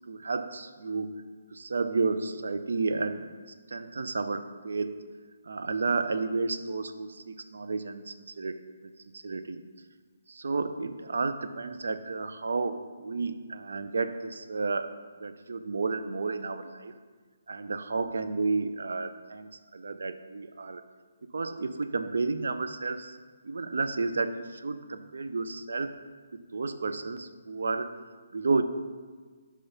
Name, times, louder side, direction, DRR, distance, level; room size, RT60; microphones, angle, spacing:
voice 1, 0.1-1.2 1.5-3.2 3.7-5.0 5.5-8.6 9.2-9.6 10.3-14.9 15.2-16.9 17.5-20.8 21.3-23.2 23.4-25.9 26.5-27.9 28.3-28.6, right 4 dB, 65° right, 9 dB, 0.5 m, -31 dB
5.4 x 5.0 x 5.7 m, 1.5 s
figure-of-eight pair, 140°, 0 cm